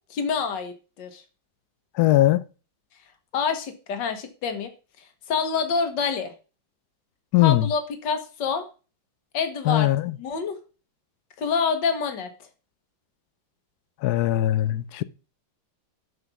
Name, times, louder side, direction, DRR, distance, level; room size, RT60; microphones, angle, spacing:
voice 1, 0.1-1.2 3.3-4.7 5.3-6.3 7.4-8.7 9.3-9.9 10.2-10.6 11.4-12.3, left 5 dB, 65° left, 1.9 m, -27 dB
voice 2, 1.9-2.4 7.3-7.7 9.6-10.1 14.0-15.0, left 14 dB, 80° left, 0.9 m, -20 dB
8.1 x 5.2 x 5.9 m
omnidirectional pair, 2.2 m